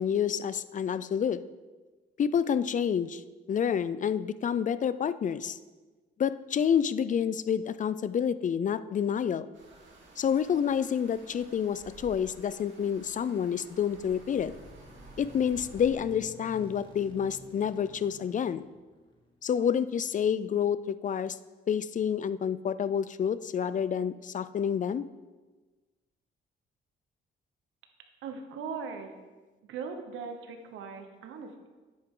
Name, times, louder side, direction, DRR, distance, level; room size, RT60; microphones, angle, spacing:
voice 1, 0.0-1.4 2.2-3.2 3.5-5.6 6.2-9.5 10.2-14.5 15.2-18.6 19.4-21.4 21.7-25.0, left 8 dB, 40° left, 15 dB, 0.5 m, -28 dB
sound 1, 9.5-15.9, right 2 dB, 70° right, 2.7 m, -52 dB
sound 2, 14.1-19.5, left 2 dB, 25° left, 1.9 m, -53 dB
voice 2, 28.2-29.1 29.6-31.7, right 5 dB, 85° right, 5 dB, 1.2 m, -39 dB
10.5 x 8.5 x 3.8 m, 1.3 s
cardioid pair, 90°, 20 cm